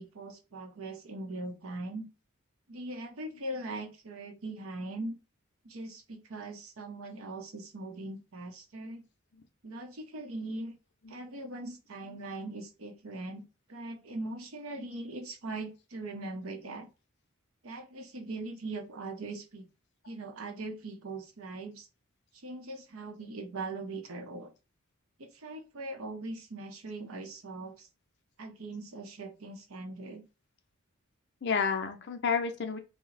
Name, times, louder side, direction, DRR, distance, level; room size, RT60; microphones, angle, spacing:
voice 1, 0.0-2.1 2.7-5.1 5.6-9.0 9.6-10.7 11.1-13.4 13.7-16.9 17.6-19.7 20.1-21.9 22.3-24.5 25.2-27.9 28.4-30.2, right 2 dB, 70° right, 4 dB, 0.7 m, -40 dB
voice 2, 31.4-32.8, left 5 dB, 50° left, 6 dB, 0.5 m, -31 dB
2.8 x 2.0 x 3.8 m, 0.30 s
head